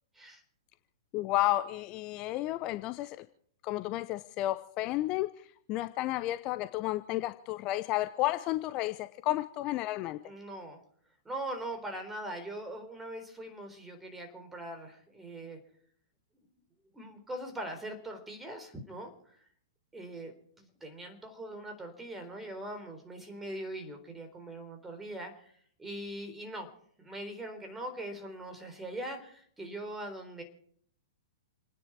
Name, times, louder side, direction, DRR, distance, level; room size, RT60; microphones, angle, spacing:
voice 1, 1.1-3.2 3.6-5.3 5.7-10.2, left 16 dB, 35° left, 11 dB, 0.8 m, -32 dB
voice 2, 10.2-10.8 11.2-15.6 16.4-16.5 16.9-19.4 19.9-25.5 25.8-26.7 27.0-30.4, right 1 dB, 10° right, 5 dB, 4.0 m, -41 dB
29.0 x 9.9 x 4.8 m, 0.63 s
figure-of-eight pair, 110°, 2 cm